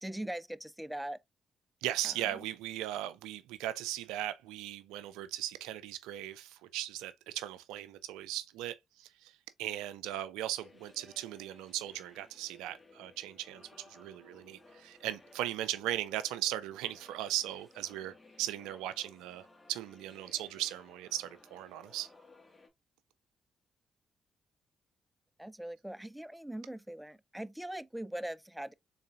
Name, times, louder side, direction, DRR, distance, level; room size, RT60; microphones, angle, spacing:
voice 1, 0.0-1.2 2.0-2.4 25.4-28.7, right 1 dB, 5° right, 0.4 m, -41 dB
voice 2, 1.8-9.3 9.6-22.1, right 13 dB, 85° right, 0.3 m, -38 dB
sound 1, 10.6-22.7, left 2 dB, 20° left, 1.5 m, -59 dB
3.9 x 3.7 x 2.3 m
hypercardioid pair, 45°, 0 cm